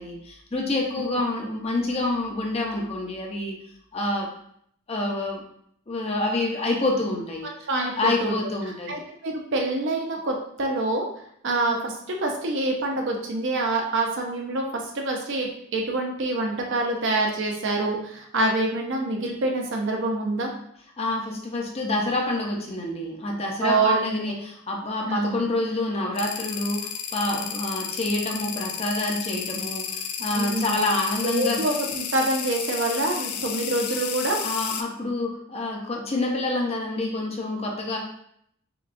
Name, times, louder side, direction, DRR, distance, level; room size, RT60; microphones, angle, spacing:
voice 1, 0.0-3.6 3.9-4.3 4.9-5.4 5.9-7.5 7.9-8.9 21.0-31.6 33.1-33.2 34.4-38.0, left 2 dB, 30° left, 0 dB, 0.6 m, -27 dB
voice 2, 7.7-8.4 8.9-11.1 11.4-20.5 23.6-24.0 25.0-25.4 30.3-30.8 31.2-34.4, right 2 dB, 55° right, 1 dB, 0.6 m, -26 dB
sound 1, 26.2-34.8, left 8 dB, 90° left, 0.4 m, -32 dB
5.7 x 2.3 x 2.5 m, 0.69 s
head